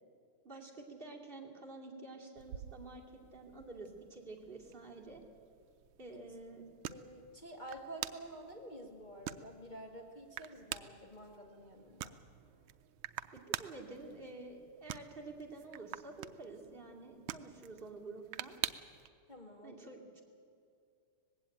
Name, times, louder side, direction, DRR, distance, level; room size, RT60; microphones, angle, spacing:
voice 1, 0.4-5.2 6.0-6.7 13.3-18.6 19.6-20.2, right 3 dB, 25° right, -1 dB, 2.6 m, -49 dB
sound 1, 2.4-19.1, right 12 dB, 75° right, 1.4 m, -47 dB
voice 2, 6.9-12.2 19.3-19.8, right 1 dB, 20° left, 0 dB, 1.8 m, -49 dB
20.0 x 16.0 x 9.0 m, 2.5 s
omnidirectional pair, 2.4 m